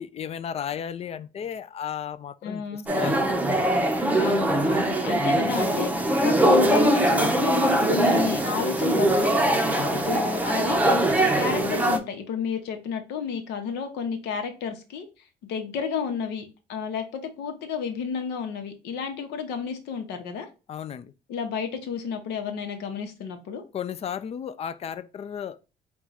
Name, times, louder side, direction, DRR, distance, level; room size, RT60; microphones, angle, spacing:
voice 1, 0.0-3.4 9.7-10.1 20.7-21.1 23.7-25.7, left 8 dB, 40° left, 0.3 m, -34 dB
voice 2, 2.4-2.9 4.2-5.9 6.2-9.6 9.9-15.1 15.4-20.5 21.3-23.6, left 6 dB, 80° left, 0.9 m, -31 dB
sound 1, 2.9-12.0, right 1 dB, 10° right, 0.6 m, -22 dB
4.4 x 2.3 x 4.0 m
cardioid pair, 110°, 17 cm